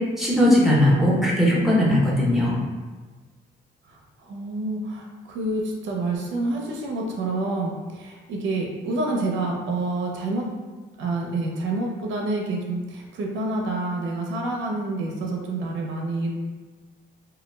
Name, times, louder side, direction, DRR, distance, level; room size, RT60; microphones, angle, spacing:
voice 1, 0.2-2.5, left 1 dB, ahead, -6 dB, 0.8 m, -19 dB
voice 2, 3.9-10.5 11.0-16.3, right 2 dB, 70° right, 0 dB, 0.5 m, -28 dB
2.2 x 2.0 x 3.1 m, 1.3 s
cardioid pair, 90°, 20 cm